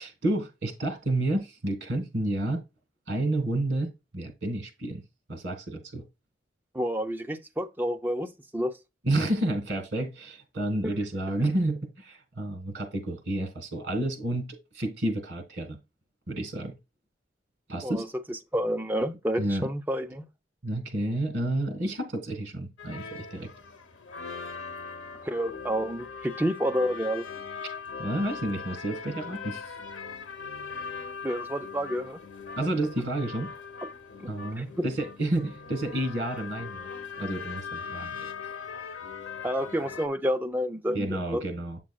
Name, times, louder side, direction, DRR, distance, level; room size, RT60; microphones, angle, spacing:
voice 1, 0.0-2.6 3.1-3.9 4.1-5.0 5.3-6.0 9.0-15.8 16.3-16.7 17.7-18.1 19.4-19.7 20.6-23.5 28.0-29.6 32.6-33.5 34.3-36.9 37.2-38.3 40.9-41.8, right 1 dB, 60° right, 1.5 m, -30 dB
voice 2, 6.7-8.7 10.8-11.0 17.8-20.2 25.2-27.3 31.2-32.2 33.8-33.9 34.2-34.8 39.4-41.4, equal, 10° right, 0.4 m, -29 dB
sound 1, 22.8-40.1, left 5 dB, 90° left, 0.9 m, -40 dB
7.6 x 5.9 x 2.3 m
head